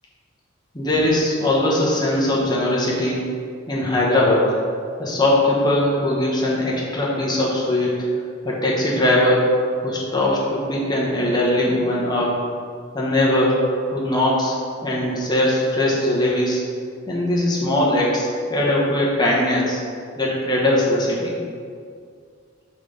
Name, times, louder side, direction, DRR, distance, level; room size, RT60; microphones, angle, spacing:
voice 1, 0.7-3.2 3.7-4.6 5.0-7.9 8.4-9.5 9.8-12.3 12.9-13.6 13.9-14.6 14.8-16.6 17.1-19.8 20.2-21.4, left 1 dB, 20° left, -4 dB, 1.2 m, -20 dB
5.9 x 4.2 x 5.0 m, 2.2 s
head